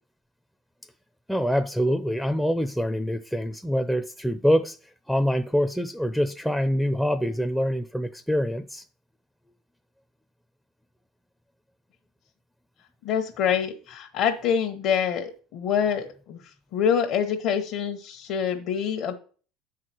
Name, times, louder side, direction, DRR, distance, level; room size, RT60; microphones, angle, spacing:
voice 1, 1.3-4.8 5.1-8.8, equal, ahead, 0.5 m, -25 dB
voice 2, 13.0-16.4 16.7-19.1, left 7 dB, 65° left, 1.1 m, -26 dB
7.8 x 4.8 x 6.1 m
supercardioid pair, 90°, 0 cm